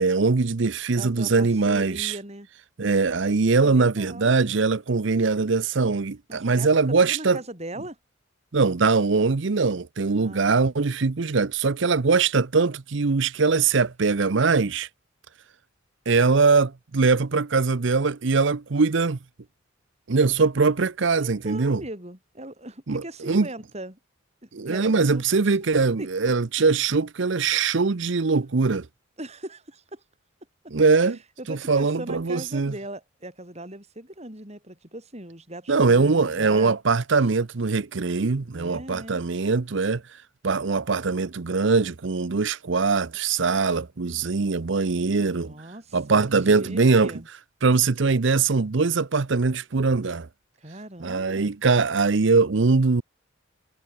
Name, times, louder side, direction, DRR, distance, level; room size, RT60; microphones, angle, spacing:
voice 1, 0.0-2.1 2.8-7.4 8.5-14.9 16.1-19.2 20.1-21.8 22.9-23.5 24.5-28.9 30.7-31.2 31.5-32.7 35.7-40.0 40.4-45.6 45.9-47.1 47.6-50.3 51.0-53.0, right 4 dB, 60° right, 0.7 m, -22 dB
voice 2, 0.9-2.5 3.5-4.4 6.3-8.0 10.2-10.6 21.2-24.0 24.4-25.4 26.0-26.1 29.2-30.0 31.0-36.8 38.5-39.2 45.3-47.3 50.6-51.5, right 1 dB, 30° right, 6.5 m, -39 dB
head